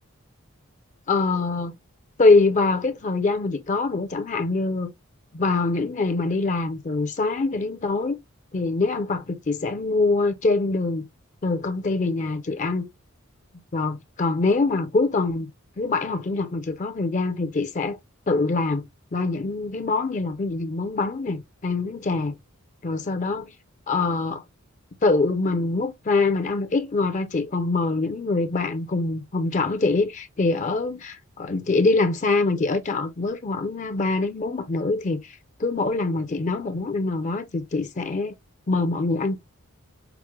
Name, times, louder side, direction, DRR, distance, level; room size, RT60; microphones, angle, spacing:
voice 1, 1.1-1.7 2.2-4.9 5.3-8.2 8.5-11.0 11.4-12.9 13.7-15.5 15.8-18.0 18.3-18.8 19.1-22.3 22.8-23.5 23.9-24.4 25.0-38.4 38.7-39.4, left 3 dB, 35° left, 0.4 m, -24 dB
5.9 x 2.1 x 3.0 m
head